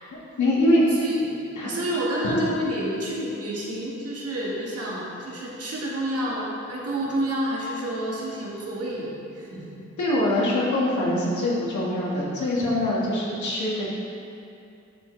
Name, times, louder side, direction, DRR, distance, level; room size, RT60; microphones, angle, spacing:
voice 1, 0.4-0.8 1.6-1.7 2.2-2.4 10.0-13.8, left 1 dB, 85° left, -5 dB, 1.7 m, -23 dB
voice 2, 0.9-1.3 1.6-9.8, right 1 dB, 55° right, -5 dB, 1.6 m, -29 dB
11.0 x 4.6 x 3.2 m, 2.6 s
wide cardioid pair, 145°, 29 cm